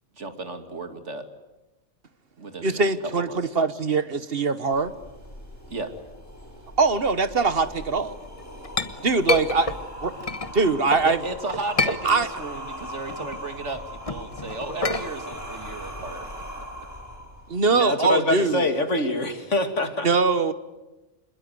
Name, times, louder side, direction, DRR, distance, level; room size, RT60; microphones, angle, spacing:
voice 1, 0.1-1.3 2.4-2.8 3.2-3.4 5.7-5.9 11.0-16.3, right 3 dB, 75° right, 7 dB, 2.7 m, -34 dB
voice 2, 2.6-4.9 6.8-8.2 9.0-9.7 10.0-10.1 10.5-11.2 12.0-12.3 17.5-18.6 20.0-20.5, right 4 dB, 55° right, 12 dB, 1.5 m, -22 dB
sound 1, 4.7-17.7, equal, 15° left, 5.6 m, -40 dB
Chink clink, 8.2-11.1 11.5-12.6 12.9-17.0, left 2 dB, 30° left, 1.4 m, -29 dB
voice 3, 17.7-20.1, left 2 dB, 80° left, 7 dB, 3.0 m, -24 dB
26.5 x 21.5 x 9.5 m, 1.1 s
omnidirectional pair, 1.2 m